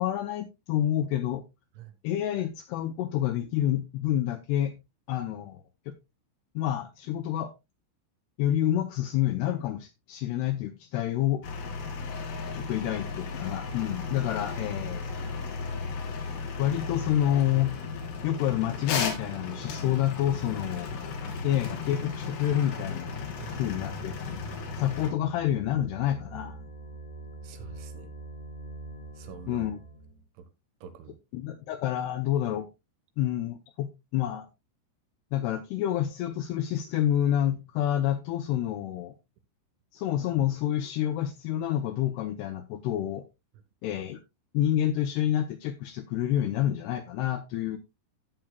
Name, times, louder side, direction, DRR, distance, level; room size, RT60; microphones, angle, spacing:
voice 1, 0.0-1.4 2.0-4.8 5.1-5.6 5.9-6.0 6.6-7.5 8.4-11.4 12.5-15.1 16.6-17.8 18.2-21.0 21.4-23.1 23.6-24.1 24.8-26.6 29.5-29.8 31.3-32.7 33.2-34.5 35.3-39.1 39.9-43.2 43.8-44.2 44.5-47.8, left 12 dB, 85° left, 2.3 m, -28 dB
sound 1, 11.4-25.1, left 4 dB, 65° left, 4.0 m, -35 dB
voice 2, 23.4-23.8 27.4-28.1 29.1-29.7 30.4-30.5 30.8-31.2, right 8 dB, 85° right, 3.7 m, -46 dB
sound 2, 25.1-30.2, right 2 dB, 45° left, 4.8 m, -44 dB
13.5 x 8.7 x 2.3 m
omnidirectional pair, 5.4 m